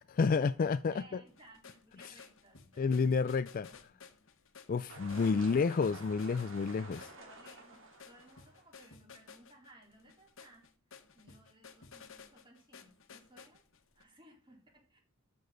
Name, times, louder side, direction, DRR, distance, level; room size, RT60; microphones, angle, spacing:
voice 1, 0.0-1.2 2.0-2.1 2.8-3.7 4.7-7.0, left 5 dB, 40° left, 0.4 m, -30 dB
voice 2, 0.9-4.1 6.8-13.6 13.9-15.0, right 1 dB, 25° right, 3.9 m, -60 dB
sound 1, 1.3-14.0, left 5 dB, 65° left, 1.4 m, -55 dB
sound 2, 4.9-8.6, right 2 dB, 65° right, 3.0 m, -51 dB
13.0 x 6.9 x 3.9 m
head